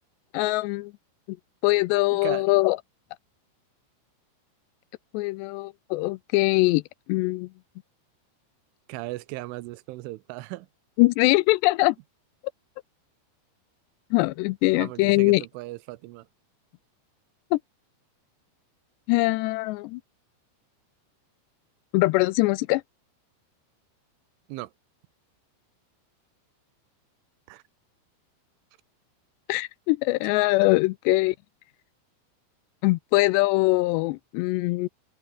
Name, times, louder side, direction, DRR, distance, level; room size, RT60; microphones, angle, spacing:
voice 1, 0.3-0.9 1.3-1.4 1.6-2.8 5.1-6.8 7.1-7.5 11.0-12.0 14.1-15.4 17.5-17.6 19.1-20.0 21.9-22.8 29.5-31.3 32.8-34.9, left 21 dB, 85° left, 2.5 m, -22 dB
voice 2, 2.1-2.5 8.9-10.7 14.7-16.3 24.5-24.7 27.5-27.6, right 19 dB, 85° right, 3.3 m, -37 dB
omnidirectional pair, 5.5 m